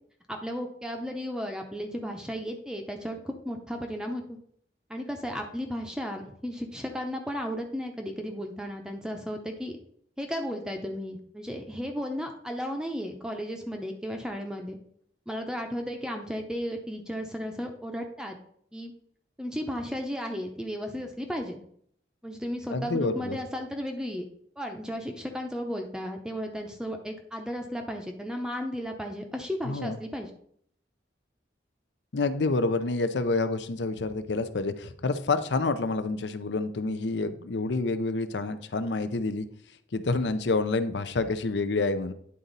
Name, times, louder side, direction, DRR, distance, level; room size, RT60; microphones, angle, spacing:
voice 1, 0.3-4.4 4.9-9.8 10.2-14.8 15.3-18.4 18.7-18.9 19.4-21.6 22.2-24.3 24.6-30.3, equal, 5° right, 3 dB, 0.6 m, -34 dB
voice 2, 22.7-23.4 29.6-30.0 32.1-39.5 39.9-42.1, left 3 dB, 75° left, 11 dB, 0.6 m, -28 dB
9.7 x 4.0 x 4.0 m, 0.64 s
head